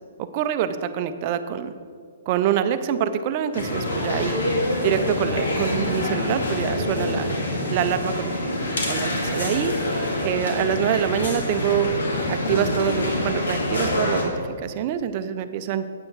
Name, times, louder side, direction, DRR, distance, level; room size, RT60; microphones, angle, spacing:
voice 1, 0.2-1.7 2.3-4.4 4.8-7.4 7.7-8.5 8.9-11.9 12.3-14.3 14.6-15.8, right 9 dB, 40° right, 10 dB, 0.6 m, -25 dB
sound 1, 3.5-14.2, left 1 dB, 75° left, 2.1 m, -26 dB
8.7 x 8.6 x 4.6 m, 2.1 s
hypercardioid pair, 130°, 0 cm